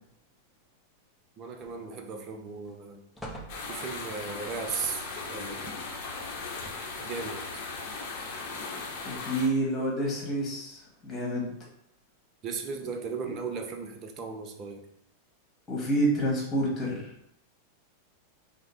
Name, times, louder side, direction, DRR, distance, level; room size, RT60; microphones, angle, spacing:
voice 1, 1.4-3.0 3.7-5.7 7.0-7.6 12.4-14.8, right 5 dB, 35° right, 4 dB, 0.6 m, -36 dB
sound 1, 1.6-2.1 2.5-2.7 3.2-4.2 6.3-7.1 7.9-8.0, right 1 dB, 5° left, 0.7 m, -45 dB
sound 2, 3.5-9.5, left 4 dB, 45° left, 0.8 m, -38 dB
voice 2, 9.0-11.5 15.7-17.0, right 1 dB, 20° left, -3 dB, 1.4 m, -28 dB
4.7 x 2.1 x 3.4 m, 0.75 s
figure-of-eight pair, 90°, 0 cm